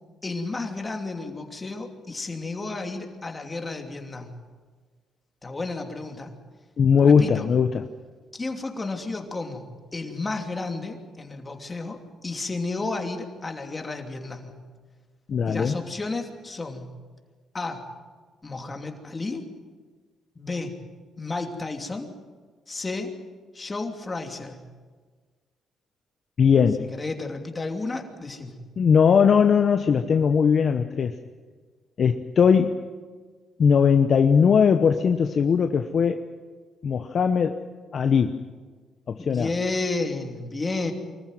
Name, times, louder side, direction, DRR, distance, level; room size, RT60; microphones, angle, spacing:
voice 1, 0.2-4.4 5.4-6.3 7.0-7.5 8.3-14.6 15.4-16.9 17.5-17.8 18.4-19.5 20.3-20.8 21.2-22.1 22.7-23.2 23.5-24.6 26.8-28.5 39.2-40.9, left 3 dB, 25° left, 4 dB, 2.9 m, -32 dB
voice 2, 6.8-7.8 15.3-15.7 26.4-26.9 28.8-31.2 32.0-32.8 33.6-36.2 36.8-37.6 37.9-38.4 39.1-39.5, left 6 dB, 50° left, 7 dB, 1.0 m, -19 dB
24.5 x 14.5 x 9.3 m, 1.5 s
cardioid pair, 90°, 0 cm